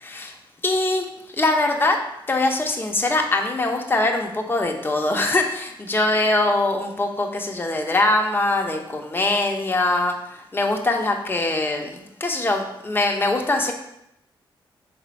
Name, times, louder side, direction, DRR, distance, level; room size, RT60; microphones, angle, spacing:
voice 1, 0.0-0.4 0.6-1.1 1.4-2.0 2.3-13.7, left 2 dB, 25° left, 2 dB, 1.0 m, -22 dB
5.2 x 3.8 x 5.7 m, 0.80 s
cardioid pair, 95°, 9 cm